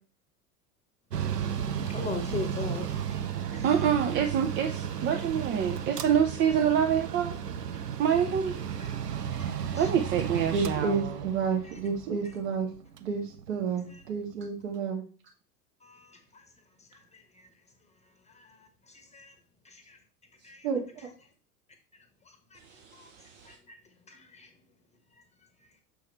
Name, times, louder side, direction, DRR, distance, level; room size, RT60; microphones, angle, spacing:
Mechanical fan, 1.1-14.5, right 8 dB, 85° right, 0.6 m, -34 dB
voice 1, 1.9-3.0 3.5-3.6 9.3-9.9 13.9-14.0 15.8-16.4 16.9-17.0 18.3-18.5 19.1-19.3 19.7-20.0 20.4-20.7 22.5-22.6 23.0-23.1 23.5-23.8 24.1-24.5, left 4 dB, 15° left, 1.1 m, -40 dB
voice 2, 3.6-7.3 8.0-8.6 9.8-11.2 22.8-23.5, right 8 dB, 25° right, 0.6 m, -26 dB
voice 3, 10.5-12.7 13.0-15.0 20.6-20.8, right 5 dB, 55° right, 2.0 m, -30 dB
6.4 x 4.7 x 4.4 m
figure-of-eight pair, 85°, 47 cm